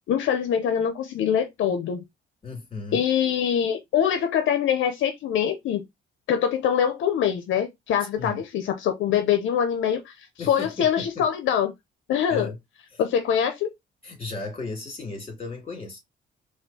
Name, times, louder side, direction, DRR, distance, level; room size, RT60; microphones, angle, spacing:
voice 1, 0.1-2.0 2.9-5.8 6.3-11.7 12.1-12.5 13.0-13.7, left 8 dB, 75° left, 0.6 m, -24 dB
voice 2, 2.4-3.0 8.2-8.4 10.4-11.2 12.3-12.6 12.9-13.0 14.0-16.0, left 3 dB, 30° left, 2.3 m, -35 dB
4.3 x 2.4 x 2.7 m
cardioid pair, 90°, 20 cm